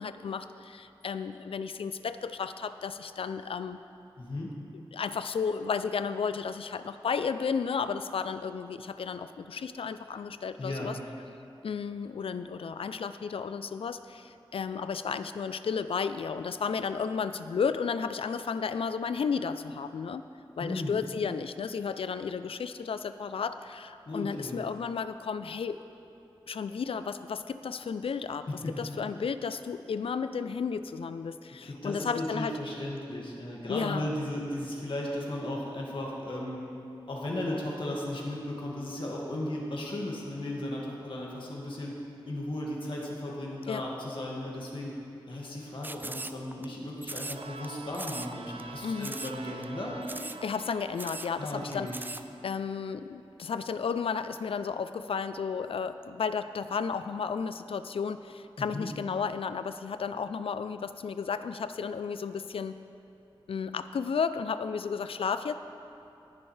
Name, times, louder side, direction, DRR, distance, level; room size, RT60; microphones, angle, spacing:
voice 1, 0.0-3.8 4.9-11.0 11.6-20.2 20.6-25.8 26.5-28.5 28.8-32.6 33.7-34.1 43.7-43.8 48.8-49.2 50.4-52.1 52.4-62.8 63.5-65.6, left 6 dB, 80° left, 11 dB, 0.4 m, -33 dB
voice 2, 4.2-4.5 10.6-10.9 20.6-20.9 24.1-24.6 28.5-29.0 31.6-36.6 37.1-41.9 42.3-44.9 45.3-50.2 51.4-51.9 58.6-58.9, left 1 dB, 65° left, -3 dB, 1.9 m, -35 dB
sound 1, 45.8-46.7 47.0-47.7 47.9-48.3 48.6-48.7 49.0-49.4 49.6-49.7 50.0-50.4 50.7-50.8 51.0-51.3 51.7-52.2, right 2 dB, 20° right, 0.3 m, -39 dB
sound 2, 47.3-52.6, right 3 dB, 80° right, 0.5 m, -47 dB
19.0 x 7.1 x 3.3 m, 2.7 s
wide cardioid pair, 85°, 9 cm